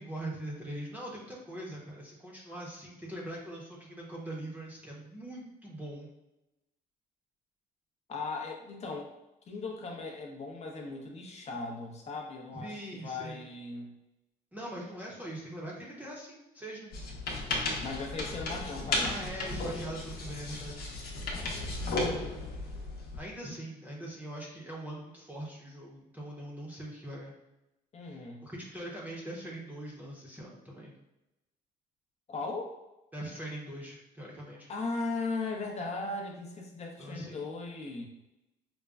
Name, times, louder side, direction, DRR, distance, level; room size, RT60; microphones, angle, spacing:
voice 1, 0.0-6.1 12.5-13.4 14.5-16.9 19.0-20.8 23.2-27.3 28.1-30.9 33.1-34.7 37.0-37.4, right 1 dB, 10° right, -4 dB, 0.8 m, -42 dB
voice 2, 8.1-9.1 9.5-13.9 17.8-19.2 27.9-28.5 32.3-32.8 34.7-38.1, left 3 dB, 40° left, 1 dB, 0.7 m, -37 dB
sound 1, 16.9-23.3, left 2 dB, 65° left, 0.9 m, -34 dB
5.0 x 2.2 x 2.3 m, 0.95 s
cardioid pair, 110°, 17 cm